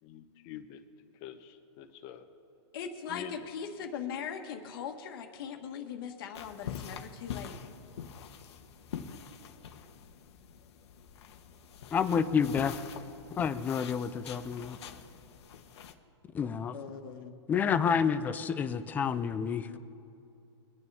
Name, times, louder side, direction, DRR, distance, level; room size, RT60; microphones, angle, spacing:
voice 1, 0.0-0.8 1.2-2.3 3.1-3.5, left 10 dB, 30° left, 7 dB, 1.1 m, -46 dB
voice 2, 2.7-7.5 16.7-17.3 19.6-19.8, left 7 dB, 50° left, 4 dB, 1.6 m, -40 dB
sound 1, 6.3-15.9, left 8 dB, 70° left, 1.2 m, -45 dB
voice 3, 11.9-12.7 13.4-14.8 16.3-16.8 17.5-19.8, left 7 dB, 10° left, 11 dB, 0.4 m, -29 dB
24.0 x 9.4 x 3.5 m, 2.7 s
hypercardioid pair, 155°, 15 cm